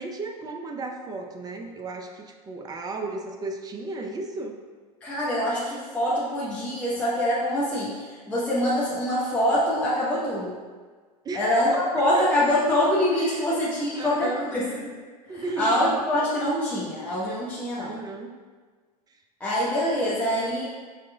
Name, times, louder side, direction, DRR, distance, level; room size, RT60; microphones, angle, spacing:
voice 1, 0.0-4.6 11.2-12.4 13.2-13.6 13.9-14.6 15.3-16.0 17.7-18.3, right 3 dB, 20° right, 3 dB, 0.4 m, -34 dB
voice 2, 5.0-10.5 11.3-14.9 15.3-17.9 19.4-20.6, left 1 dB, 5° left, -8 dB, 0.7 m, -25 dB
4.9 x 3.0 x 2.2 m, 1.5 s
hypercardioid pair, 85°, 20 cm